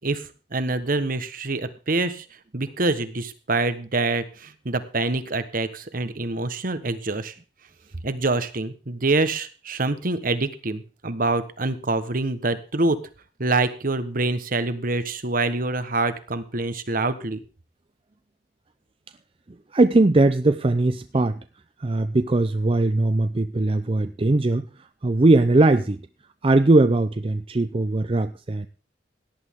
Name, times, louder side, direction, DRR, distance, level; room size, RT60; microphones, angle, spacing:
voice 1, 0.0-2.2 2.5-7.3 8.0-13.0 13.4-17.4, right 2 dB, 50° right, 12 dB, 1.2 m, -25 dB
voice 2, 19.7-21.4 21.8-24.7 25.0-26.0 26.4-28.7, right 2 dB, 30° right, 10 dB, 0.5 m, -20 dB
17.5 x 11.0 x 3.7 m, 0.35 s
head